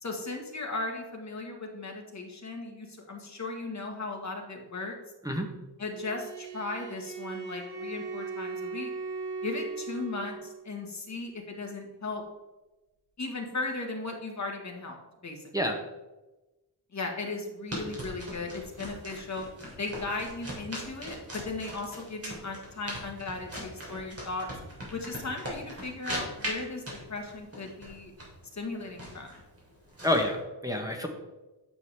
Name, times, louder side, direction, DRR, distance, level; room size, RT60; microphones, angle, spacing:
voice 1, 0.0-4.9 5.8-8.9 9.4-12.2 13.2-15.4 16.9-19.4 19.8-24.5 24.9-28.1 28.5-29.3, left 3 dB, 40° left, 1 dB, 1.6 m, -37 dB
Bowed string instrument, 5.9-10.6, right 4 dB, 85° right, 2.6 m, -38 dB
sound 1, 17.7-30.4, equal, 35° right, 3.1 m, -40 dB
voice 2, 30.0-31.1, left 1 dB, 10° right, 2 dB, 1.0 m, -28 dB
9.7 x 6.9 x 3.4 m, 1.1 s
wide cardioid pair, 130°, 42 cm